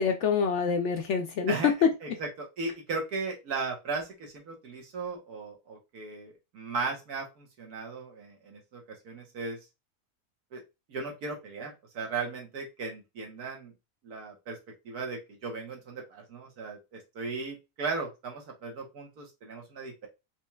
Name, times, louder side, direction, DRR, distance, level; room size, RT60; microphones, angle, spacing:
voice 1, 0.0-2.2, left 6 dB, 65° left, 6 dB, 0.7 m, -26 dB
voice 2, 2.0-9.6 10.5-10.6 10.9-13.7 14.0-14.6 14.8-20.1, right 4 dB, 85° right, 1 dB, 1.6 m, -37 dB
4.4 x 2.9 x 2.2 m, 0.25 s
omnidirectional pair, 1.6 m